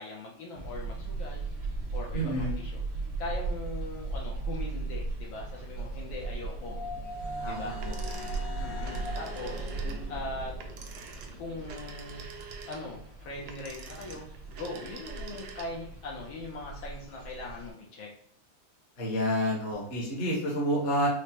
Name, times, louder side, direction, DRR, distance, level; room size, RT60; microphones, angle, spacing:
voice 1, 0.0-1.4 1.9-2.8 3.2-6.8 7.4-7.8 8.6-9.7 10.1-10.5 11.4-12.3 12.7-18.1, left 2 dB, 70° left, -2 dB, 1.4 m, -40 dB
sound 1, 0.5-17.7, right 3 dB, 60° right, 0.6 m, -37 dB
voice 2, 2.1-2.5 7.4-8.1 19.0-21.1, equal, 35° left, -3 dB, 1.1 m, -29 dB
sound 2, 5.8-11.7, left 1 dB, 90° left, 2.3 m, -42 dB
sound 3, 7.8-15.9, right 5 dB, 90° right, 0.9 m, -46 dB
5.0 x 2.1 x 2.9 m, 0.63 s
omnidirectional pair, 2.4 m